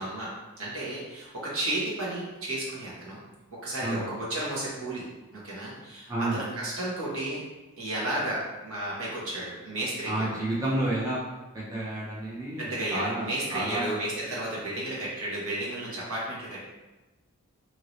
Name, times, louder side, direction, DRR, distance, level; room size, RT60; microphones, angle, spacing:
voice 1, 0.0-3.2 3.5-7.4 7.8-10.3 12.6-16.7, right 1 dB, 70° right, -6 dB, 1.1 m, -33 dB
voice 2, 6.1-6.4 10.1-11.2 11.5-14.0, right 1 dB, 15° right, -7 dB, 0.5 m, -30 dB
2.8 x 2.6 x 3.0 m, 1.1 s
head